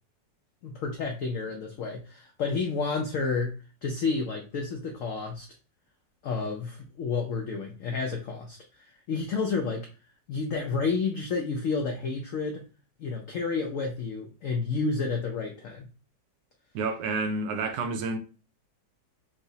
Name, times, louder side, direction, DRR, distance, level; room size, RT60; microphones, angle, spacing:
voice 1, 0.6-3.5 3.8-5.5 6.2-9.9 10.3-12.6 13.0-15.8, left 4 dB, 85° left, 0.7 m, -30 dB
voice 2, 16.7-18.2, right 3 dB, 75° right, 1.1 m, -29 dB
4.6 x 2.0 x 2.7 m
omnidirectional pair, 2.0 m